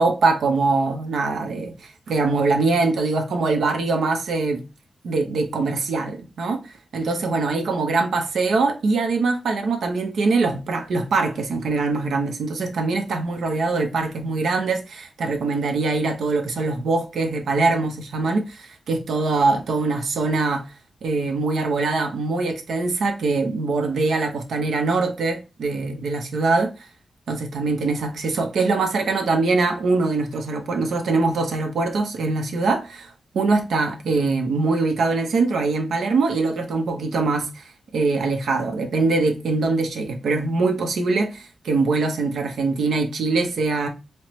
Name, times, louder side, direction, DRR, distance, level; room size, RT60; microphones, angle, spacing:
voice 1, 0.0-4.6 5.0-20.6 21.0-26.9 27.3-43.9, right 3 dB, 85° right, 0.7 m, -23 dB
4.3 x 2.1 x 3.0 m
wide cardioid pair, 95°, 0 cm